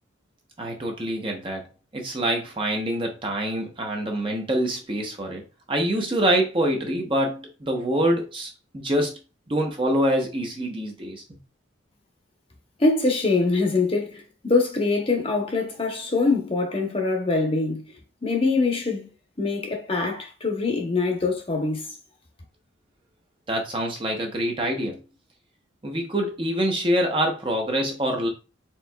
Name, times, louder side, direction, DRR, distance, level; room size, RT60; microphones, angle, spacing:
voice 1, 0.6-1.7 1.9-5.4 5.7-9.1 9.5-11.2 23.5-25.0 25.8-28.3, right 1 dB, 25° right, 0.7 m, -25 dB
voice 2, 12.8-17.8 18.2-19.1 19.4-21.9, left 3 dB, 30° left, 0.8 m, -24 dB
4.5 x 3.6 x 2.2 m
head